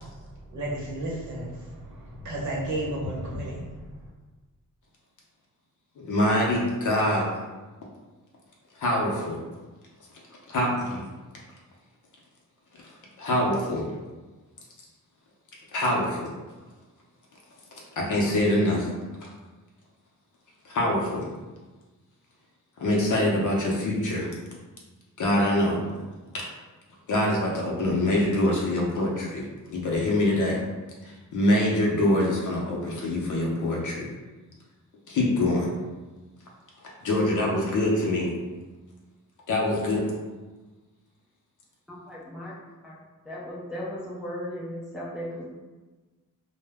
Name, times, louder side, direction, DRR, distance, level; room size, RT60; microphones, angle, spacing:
voice 1, 0.5-1.5 1.8-3.7, right 1 dB, 65° right, -4 dB, 0.8 m, -32 dB
voice 2, 6.0-7.3 8.8-9.4 10.5-11.0 13.2-13.9 15.7-16.3 18.0-18.9 19.2-19.3 20.6-21.3 22.8-24.3 25.2-25.8 26.3-26.4 27.1-30.6 31.0-34.1 35.1-35.7 37.0-38.3 39.5-40.1, left 1 dB, 65° left, -3 dB, 0.6 m, -24 dB
voice 3, 41.9-42.5 42.8-43.0 43.3-45.4, equal, ahead, -7 dB, 0.4 m, -36 dB
2.1 x 2.0 x 3.4 m, 1.2 s
wide cardioid pair, 165°, 32 cm